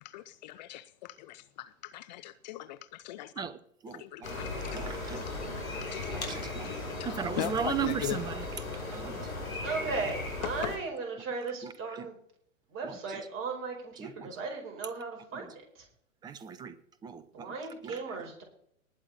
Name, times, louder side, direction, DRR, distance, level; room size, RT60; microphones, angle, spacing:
voice 1, 0.0-3.3 3.9-6.4 6.6-8.2 9.5-9.7 10.4-10.8, left 14 dB, 35° left, 0.5 m, -40 dB
voice 2, 3.8-4.3 4.7-5.2 6.1-6.7 7.0-8.5 8.9-9.3 11.6-12.1 12.8-13.2 14.0-14.4 15.3-15.5 16.2-16.8 17.0-18.2, right 7 dB, 10° right, 0.6 m, -37 dB
sound 1, 4.2-10.8, left 2 dB, 85° left, 5.2 m, -37 dB
voice 3, 9.6-12.2 12.7-15.9 17.3-18.4, right 4 dB, 30° right, 5.1 m, -37 dB
19.5 x 8.0 x 4.3 m
figure-of-eight pair, 115°, 41 cm